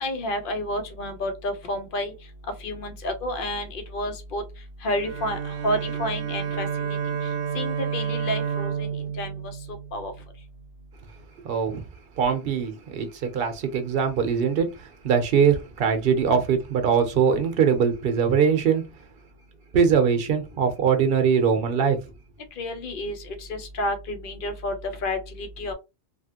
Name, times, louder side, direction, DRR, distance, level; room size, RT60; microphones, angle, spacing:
voice 1, 0.0-2.1 2.6-4.4 4.8-7.0 7.5-8.9 9.2-9.3 9.9-10.1 22.6-25.7, left 1 dB, 55° left, 0.9 m, -30 dB
Bowed string instrument, 4.9-10.4, right 7 dB, 85° right, 0.9 m, -30 dB
voice 2, 11.4-11.8 12.2-18.8 19.7-22.0, right 6 dB, 60° right, 0.9 m, -22 dB
2.9 x 2.4 x 2.8 m
omnidirectional pair, 1.1 m